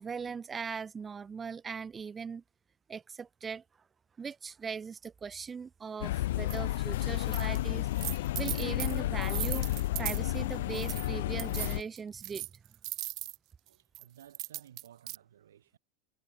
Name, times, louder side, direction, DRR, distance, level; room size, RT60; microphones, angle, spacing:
voice 1, 0.0-2.4 2.9-3.6 4.2-9.7 10.0-12.5, right 6 dB, 20° right, 3.0 m, -40 dB
sound 1, 6.0-11.8, left 15 dB, 75° left, 0.6 m, -31 dB
sound 2, 6.5-6.6 7.2-7.6 7.9-10.2 10.7-11.1 11.4-13.4 13.9-15.2, right 19 dB, 50° right, 0.5 m, -38 dB
voice 2, 13.7-15.8, right 10 dB, 85° right, 4.3 m, -57 dB
hypercardioid pair, 105°, 0 cm